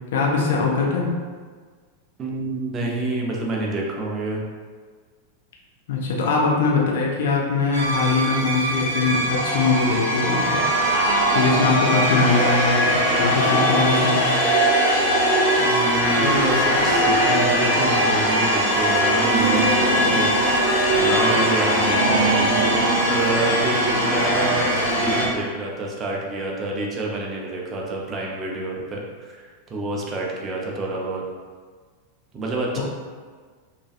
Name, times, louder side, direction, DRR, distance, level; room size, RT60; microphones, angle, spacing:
voice 1, 0.1-1.1 5.9-10.6 11.3-14.3 32.8-32.9, left 4 dB, 55° left, -2 dB, 0.4 m, -22 dB
voice 2, 2.2-4.4 15.6-22.6 23.0-29.4 29.7-31.2 32.3-32.8, right 2 dB, 25° right, -2 dB, 0.4 m, -28 dB
sound 1, 7.7-25.3, right 1 dB, 80° left, 1.1 m, -20 dB
2.5 x 2.3 x 2.4 m, 1.6 s
figure-of-eight pair, 90°, 0 cm